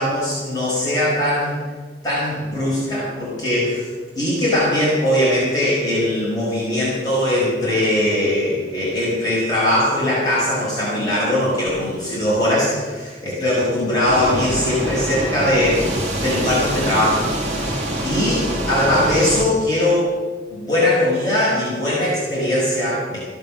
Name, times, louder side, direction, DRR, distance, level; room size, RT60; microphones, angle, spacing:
voice 1, 0.0-1.6 2.0-3.9 4.2-15.8 16.2-17.3 17.6-17.8 18.0-20.1 20.5-23.2, left 1 dB, 25° left, -8 dB, 5.3 m, -20 dB
sound 1, 14.1-19.4, right 1 dB, 40° right, 2.5 m, -25 dB
15.5 x 11.5 x 6.4 m, 1.5 s
head